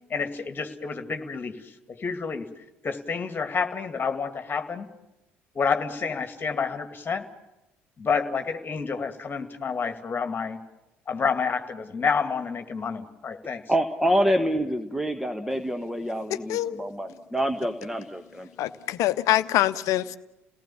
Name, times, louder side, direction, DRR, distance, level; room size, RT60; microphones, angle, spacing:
voice 1, 0.1-2.5 2.8-4.9 5.5-7.3 8.0-10.6 11.1-13.6, left 5 dB, 30° left, 2.2 m, -29 dB
voice 2, 13.7-18.5, equal, 5° right, 1.4 m, -26 dB
voice 3, 16.5-16.8 18.6-20.2, left 14 dB, 55° left, 0.9 m, -24 dB
29.5 x 18.5 x 7.2 m
figure-of-eight pair, 55°, 6 cm